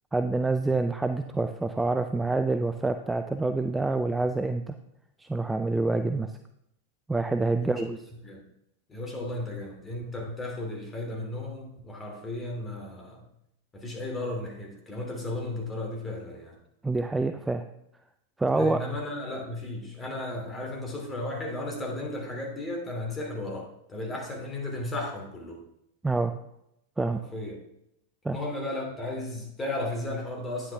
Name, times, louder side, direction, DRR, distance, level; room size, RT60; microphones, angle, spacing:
voice 1, 0.1-4.7 5.2-6.3 7.1-8.0 16.8-17.6 18.4-18.8 26.0-26.3 27.0-27.2 28.2-28.4, right 3 dB, 10° right, 8 dB, 0.4 m, -27 dB
voice 2, 8.9-13.2 13.7-16.5 18.5-25.6 27.1-27.6 28.3-30.7, left 1 dB, 20° left, 0 dB, 2.7 m, -35 dB
9.6 x 8.1 x 3.4 m, 0.79 s
figure-of-eight pair, 90°, 0 cm